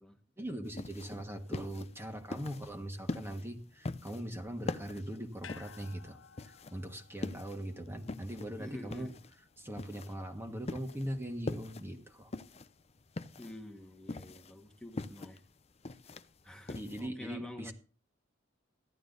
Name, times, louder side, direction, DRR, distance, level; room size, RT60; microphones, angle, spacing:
voice 1, 0.4-9.1 9.6-12.3 16.7-17.7, equal, 10° right, 4 dB, 1.5 m, -41 dB
sound 1, 0.7-17.1, left 2 dB, 35° left, 0.6 m, -43 dB
sound 2, 5.4-9.8 10.1-10.2, left 7 dB, 75° left, 0.8 m, -56 dB
voice 2, 8.6-9.1 13.4-15.4 16.4-17.7, left 1 dB, 5° left, 3 dB, 1.5 m, -48 dB
15.0 x 11.5 x 4.0 m, 0.36 s
head